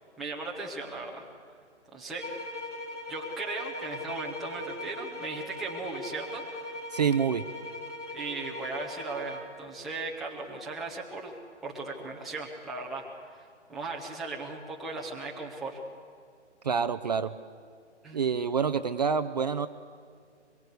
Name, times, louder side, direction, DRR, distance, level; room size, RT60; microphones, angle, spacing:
voice 1, 0.2-1.2 1.9-2.2 3.1-6.6 8.1-11.3 11.6-15.8 18.0-18.3, right 3 dB, ahead, -4 dB, 0.7 m, -37 dB
sound 1, 2.2-9.5, left 2 dB, 80° left, 4.1 m, -40 dB
voice 2, 6.9-7.4 16.6-17.3 18.1-19.7, right 6 dB, 35° right, 11 dB, 0.6 m, -27 dB
24.0 x 22.5 x 8.1 m, 2.3 s
hypercardioid pair, 160°, 36 cm